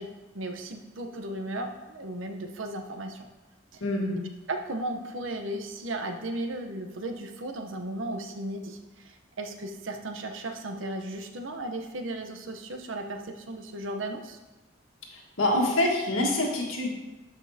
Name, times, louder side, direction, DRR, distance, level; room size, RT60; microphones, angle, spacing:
voice 1, 0.0-3.3 3.7-3.8 4.5-14.4, right 1 dB, 75° right, 4 dB, 0.9 m, -35 dB
voice 2, 3.8-4.2 15.1-16.9, left 1 dB, 85° left, -1 dB, 1.7 m, -26 dB
12.5 x 5.3 x 2.8 m, 1.1 s
head